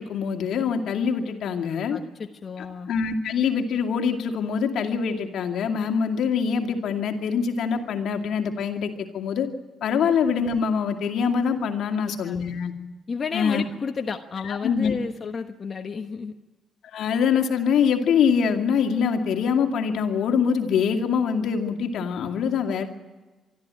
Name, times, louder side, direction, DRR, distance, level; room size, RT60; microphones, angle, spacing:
voice 1, 0.0-2.0 2.6-9.5 9.8-12.7 13.3-13.6 14.4-14.9 16.9-22.9, left 6 dB, 75° left, 5 dB, 2.3 m, -24 dB
voice 2, 1.9-2.9 11.9-12.3 13.1-16.3, left 5 dB, 40° left, 5 dB, 1.2 m, -32 dB
24.5 x 13.0 x 8.9 m, 1.2 s
cardioid pair, 90°, 0 cm